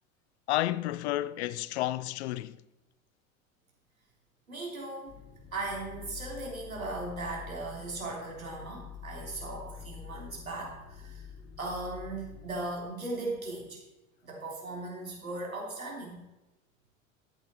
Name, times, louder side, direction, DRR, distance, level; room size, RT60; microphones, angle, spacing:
voice 1, 0.5-2.6, left 15 dB, 55° left, 0.6 m, -31 dB
voice 2, 4.5-5.2 5.5-11.3 11.6-13.8 14.2-16.2, right 2 dB, 85° right, 3.3 m, -38 dB
sound 1, 5.1-12.7, left 8 dB, 35° left, 2.5 m, -47 dB
14.0 x 8.0 x 4.2 m
figure-of-eight pair, 80°, 40 cm